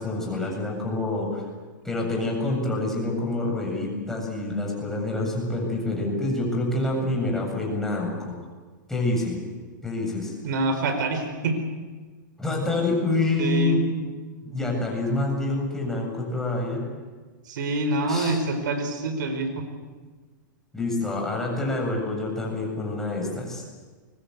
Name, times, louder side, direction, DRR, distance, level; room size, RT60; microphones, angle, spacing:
voice 1, 0.0-1.4 1.8-8.3 8.9-9.4 9.8-10.3 12.4-14.0 14.4-16.9 18.1-18.4 19.6-19.7 20.7-23.6, left 2 dB, 5° left, -1 dB, 7.9 m, -27 dB
voice 2, 10.4-11.6 13.4-13.8 17.5-19.6, right 2 dB, 70° right, 7 dB, 4.6 m, -26 dB
24.0 x 23.5 x 8.2 m, 1.4 s
hypercardioid pair, 135°, 11 cm